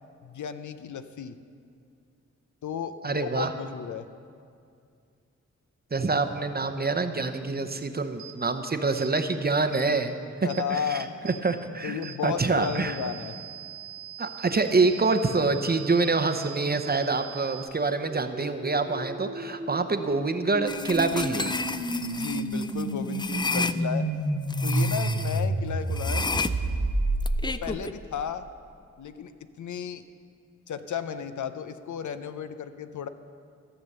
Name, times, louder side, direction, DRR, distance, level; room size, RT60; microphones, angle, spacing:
voice 1, 0.2-1.4 2.6-4.1 10.4-11.4 11.8-13.4 22.0-24.1 24.6-26.3 27.5-28.5 29.0-29.3 29.6-30.0 30.7-33.1, left 7 dB, 75° left, 10 dB, 0.6 m, -34 dB
voice 2, 3.0-3.5 5.9-13.0 14.2-21.5, right 3 dB, 30° right, 8 dB, 0.7 m, -26 dB
sound 1, 8.2-8.4 9.0-9.1 9.7-9.9 10.5-10.7 11.3-11.4 12.0-12.2 12.6-17.6, right 11 dB, 90° right, 1.8 m, -42 dB
sound 2, 17.7-27.7, right 1 dB, 70° right, 1.9 m, -30 dB
sound 3, 20.7-23.8 24.5-25.4 25.9-27.9, left 3 dB, 15° left, 0.4 m, -32 dB
14.0 x 7.0 x 6.6 m, 2.3 s
cardioid pair, 65°, 30 cm